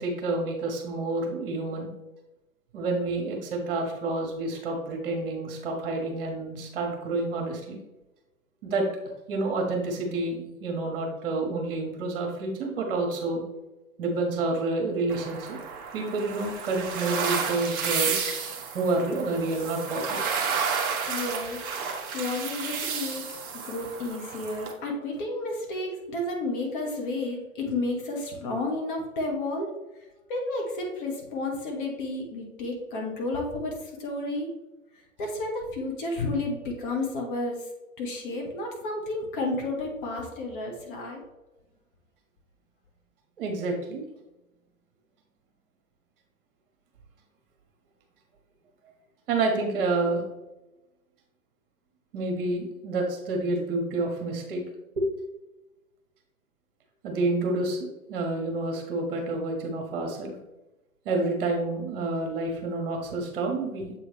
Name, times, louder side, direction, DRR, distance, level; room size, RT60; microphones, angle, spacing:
voice 1, 0.0-1.9 2.7-7.8 8.6-8.9 9.3-13.4 14.0-15.6 15.9-18.1 18.7-20.2 43.4-44.0 49.3-50.2 52.1-54.6 55.0-55.1 57.0-60.3 61.0-63.9, right 2 dB, 40° right, 2 dB, 1.4 m, -29 dB
sound 1, 15.1-24.7, right 6 dB, 20° right, 0.8 m, -31 dB
voice 2, 21.1-21.7 22.1-23.3 23.6-29.7 30.3-34.5 35.2-37.7 38.0-41.2, left 2 dB, 40° left, 1 dB, 1.4 m, -31 dB
7.5 x 3.7 x 3.4 m, 1.0 s
figure-of-eight pair, 120°, 42 cm